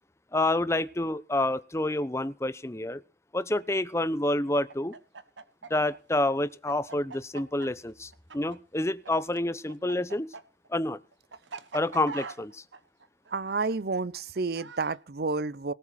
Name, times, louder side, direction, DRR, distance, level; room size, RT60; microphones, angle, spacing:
voice 1, 0.3-3.0 3.3-4.9 5.7-10.3 10.7-11.0 11.7-12.6, left 1 dB, 15° left, 0.8 m, -28 dB
Chicken rooster, 4.7-9.1 9.4-15.0, right 4 dB, 85° right, 1.3 m, -43 dB
voice 2, 13.3-15.7, right 3 dB, 55° right, 0.7 m, -30 dB
18.5 x 7.3 x 5.9 m
head